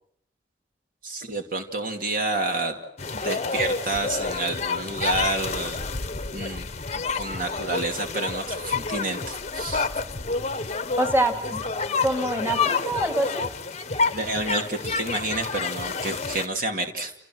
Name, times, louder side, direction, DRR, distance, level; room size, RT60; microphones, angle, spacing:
voice 1, 1.0-2.8 3.1-5.9 6.3-6.7 7.1-9.9 14.1-17.1, right 2 dB, 50° right, 4 dB, 2.7 m, -29 dB
sound 1, 3.0-16.5, left 4 dB, 35° left, 1.1 m, -29 dB
voice 2, 11.0-11.6 12.0-13.5, right 1 dB, 15° right, 5 dB, 3.4 m, -25 dB
30.0 x 30.0 x 6.3 m, 0.68 s
head